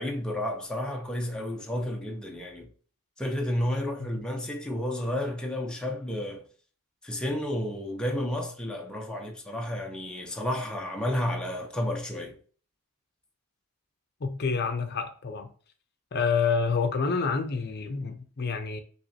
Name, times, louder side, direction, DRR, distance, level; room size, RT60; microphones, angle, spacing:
voice 1, 0.0-2.7 3.2-6.4 7.0-12.4, left 1 dB, 5° left, 0.6 m, -31 dB
voice 2, 14.2-15.5 16.1-18.8, left 5 dB, 50° left, 0.6 m, -28 dB
6.0 x 3.1 x 2.8 m
head